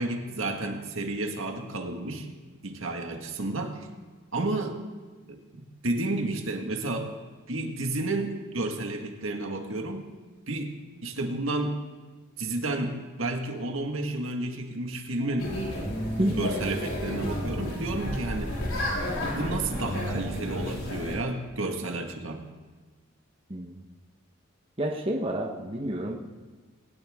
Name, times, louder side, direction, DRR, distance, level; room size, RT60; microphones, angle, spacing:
voice 1, 0.0-2.3 2.6-3.9 4.3-4.8 5.3-7.1 7.5-10.1 10.5-10.7 11.0-11.8 12.4-15.5 16.3-18.5 19.3-22.4, right 2 dB, 65° right, 3 dB, 1.8 m, -31 dB
sound 1, 15.2-20.5, equal, 35° left, 5.0 m, -37 dB
sound 2, 15.4-21.2, left 1 dB, 75° left, 4.2 m, -33 dB
voice 2, 24.8-26.2, right 1 dB, 25° right, 0 dB, 1.2 m, -29 dB
21.0 x 18.0 x 3.7 m, 1.3 s
head